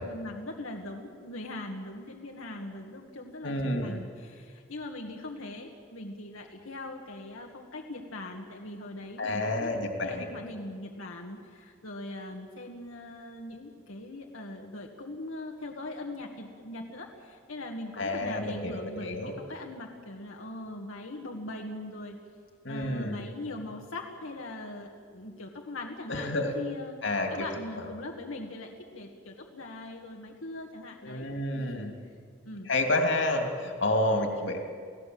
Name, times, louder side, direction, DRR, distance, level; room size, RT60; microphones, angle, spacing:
voice 1, 0.0-9.7 10.0-22.2 22.7-27.0 27.3-31.3 31.5-31.9 32.5-32.7, left 2 dB, 80° left, 1 dB, 2.0 m, -41 dB
voice 2, 3.4-4.0 9.2-10.3 18.0-19.4 22.6-23.2 26.1-26.6 27.0-27.5 27.8-27.9 31.0-31.9 32.7-34.7, left 1 dB, 60° left, 3 dB, 2.8 m, -29 dB
30.0 x 17.0 x 7.9 m, 2.1 s
head